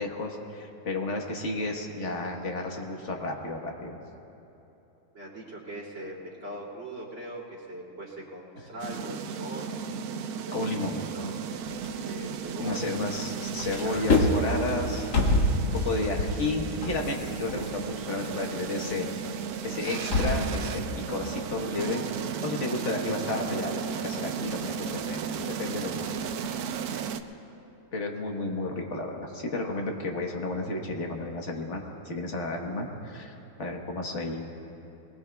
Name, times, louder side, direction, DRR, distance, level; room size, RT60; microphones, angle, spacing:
voice 1, 0.0-4.0 10.5-11.0 12.6-15.1 15.6-19.2 19.6-20.7 21.1-22.1 22.4-26.2 26.9-27.0 27.9-34.5, left 2 dB, 45° left, 1 dB, 1.5 m, -32 dB
voice 2, 5.1-9.8 10.4-10.8 11.1-11.4 12.0-12.8 13.4-13.5 13.8-14.3, right 1 dB, 45° right, -5 dB, 3.0 m, -41 dB
sound 1, 8.8-27.2, right 6 dB, 70° right, 1.0 m, -35 dB
sound 2, 11.7-13.2 13.5-20.5, left 2 dB, 75° left, 1.9 m, -28 dB
21.5 x 20.0 x 2.3 m, 2.9 s
omnidirectional pair, 1.8 m